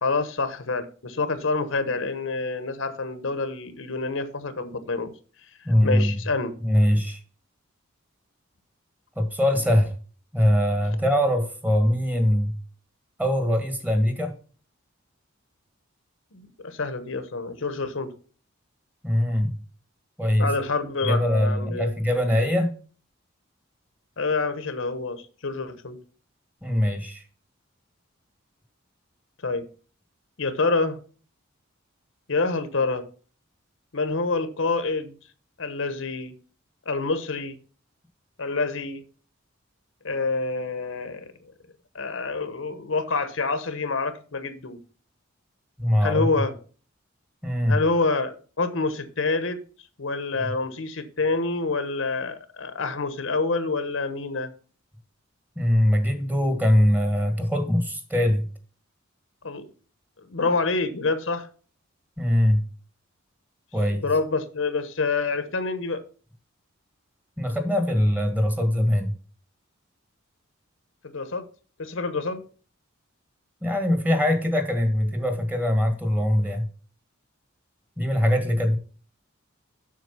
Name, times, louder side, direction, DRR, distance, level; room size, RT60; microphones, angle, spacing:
voice 1, 0.0-5.1 5.8-6.5 16.3-18.1 20.4-21.9 24.2-26.0 29.4-29.6 30.4-31.0 32.3-33.0 33.9-35.1 35.6-36.3 36.9-37.6 38.4-39.0 40.0-41.2 41.9-44.8 46.0-46.5 47.7-49.6 50.0-54.5 59.4-59.6 60.3-61.5 64.0-66.0 71.0-71.4 71.8-72.4, left 3 dB, 70° left, 1.1 m, -27 dB
voice 2, 5.6-6.2 6.6-7.2 9.1-9.9 10.3-12.5 13.2-14.3 19.0-19.6 20.2-20.5 21.0-22.8 26.6-27.2 45.8-46.2 47.4-47.8 50.3-50.5 55.5-58.4 62.2-62.6 63.7-64.0 67.4-69.1 73.6-76.7 78.0-78.8, left 1 dB, 10° right, 1.5 m, -22 dB
7.7 x 6.3 x 5.5 m
head